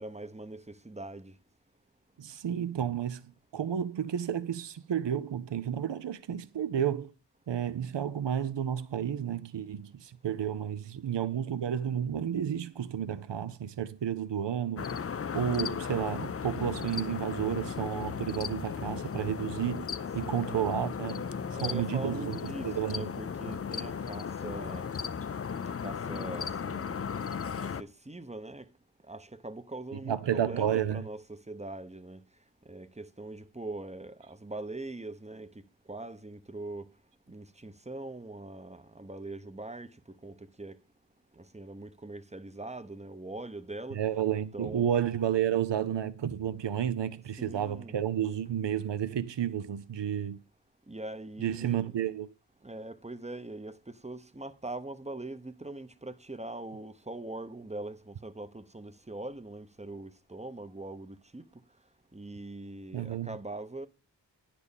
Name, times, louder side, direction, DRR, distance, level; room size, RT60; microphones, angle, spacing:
voice 1, 0.0-1.3 20.2-20.7 21.5-24.9 25.8-27.0 27.6-28.7 29.1-32.2 32.7-35.6 35.9-36.9 37.3-40.8 41.3-44.0 44.5-44.9 47.4-47.9 50.9-52.0 52.6-61.5 62.1-63.9, right 2 dB, 15° right, 0.7 m, -42 dB
voice 2, 2.2-7.1 7.5-14.9 15.3-19.9 20.1-21.3 21.6-23.1 30.1-31.0 43.9-50.4 51.4-52.3 62.9-63.4, right 9 dB, 75° right, 0.6 m, -31 dB
sound 1, 14.8-27.8, left 6 dB, 35° left, 0.4 m, -36 dB
9.9 x 4.3 x 7.1 m
wide cardioid pair, 40°, 43 cm